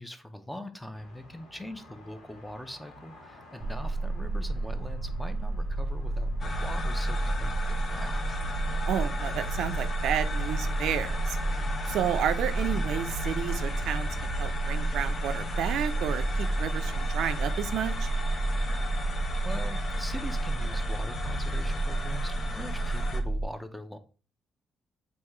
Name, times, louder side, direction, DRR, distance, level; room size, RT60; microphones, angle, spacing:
voice 1, 0.0-8.3 19.0-24.0, left 1 dB, 5° left, 8 dB, 0.6 m, -42 dB
sound 1, 0.9-19.1, left 2 dB, 85° left, 1.5 m, -54 dB
sound 2, 3.6-23.4, right 2 dB, 35° right, 0.8 m, -30 dB
sound 3, 6.4-23.2, left 4 dB, 50° left, 0.6 m, -38 dB
voice 2, 8.9-11.4 11.9-18.1, right 10 dB, 80° right, 10 dB, 0.4 m, -31 dB
3.6 x 2.7 x 4.4 m, 0.37 s
cardioid pair, 90°, 0 cm